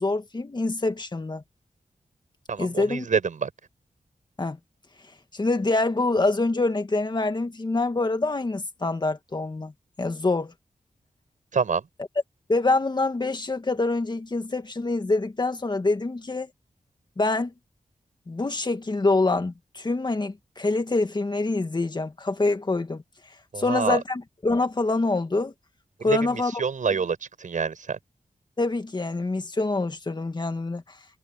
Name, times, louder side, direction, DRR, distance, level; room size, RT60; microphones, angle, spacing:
voice 1, 0.0-1.4 2.6-3.1 4.4-4.6 5.3-9.7 10.0-10.5 12.5-16.5 17.2-17.5 18.3-23.0 23.6-25.5 26.0-26.5 28.6-30.8, left 2 dB, 35° left, 2.0 m, -25 dB
voice 2, 2.5-3.5 11.5-11.9 23.5-24.0 26.0-28.0, right 5 dB, 80° right, 6.5 m, -27 dB
wide cardioid pair, 100°, 13 cm